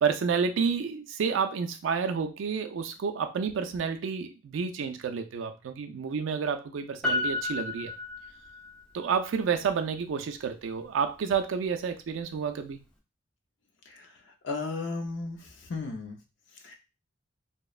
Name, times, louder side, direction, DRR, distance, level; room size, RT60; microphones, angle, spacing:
voice 1, 0.0-7.9 8.9-12.8, right 6 dB, 85° right, 7 dB, 0.3 m, -30 dB
Piano, 7.0-8.8 9.1-9.2, left 2 dB, 5° left, 0.4 m, -32 dB
voice 2, 14.4-16.2 16.6-16.7, left 3 dB, 75° left, 4 dB, 0.5 m, -35 dB
2.9 x 2.0 x 2.3 m, 0.29 s
head